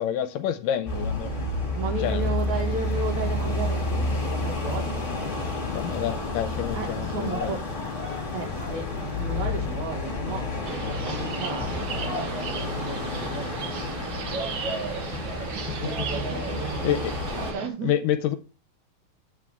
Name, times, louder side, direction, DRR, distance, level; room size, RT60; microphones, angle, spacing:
voice 1, 0.0-1.3 2.0-2.3 5.7-7.6 16.3-16.4 16.8-17.1 17.8-18.4, left 10 dB, 80° left, 9 dB, 2.2 m, -28 dB
sound 1, 0.9-17.5, left 2 dB, 25° left, 2.3 m, -30 dB
voice 2, 1.7-5.2 6.7-7.6 8.3-8.8 9.1-10.4 10.7-13.6 15.7-17.0 17.3-17.9, right 4 dB, 60° right, 2 dB, 3.0 m, -34 dB
sound 2, 2.0-9.9, left 7 dB, 60° left, 1.9 m, -38 dB
sound 3, 10.6-17.7, right 4 dB, 90° right, 1.0 m, -34 dB
8.9 x 8.3 x 3.6 m, 0.33 s
omnidirectional pair, 4.0 m